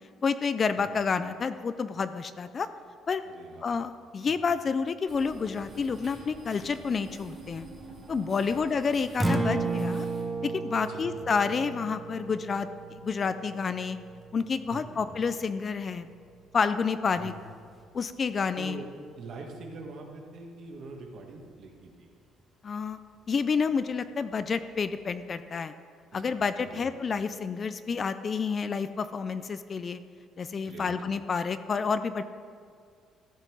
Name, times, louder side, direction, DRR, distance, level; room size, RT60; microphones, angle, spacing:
voice 1, 0.2-2.7 3.1-3.2 3.6-7.7 8.1-10.1 10.4-14.0 14.3-16.1 16.5-17.3 17.9-18.8 22.6-23.0 23.3-25.7 26.1-30.0 30.4-32.2, left 5 dB, 30° left, 12 dB, 0.3 m, -29 dB
voice 2, 3.2-3.7 4.3-4.4 8.4-8.7 10.9-11.2 14.7-15.0 17.1-17.4 18.6-18.9 19.2-22.1 26.1-26.9 30.6-30.9, right 3 dB, 50° right, 2 dB, 1.5 m, -44 dB
sound 1, 5.1-10.2, right 3 dB, 30° right, 2.4 m, -46 dB
Acoustic guitar, 9.1-17.3, right 3 dB, 5° right, 0.8 m, -35 dB
13.5 x 5.5 x 6.2 m, 2.2 s
cardioid pair, 160°, 0 cm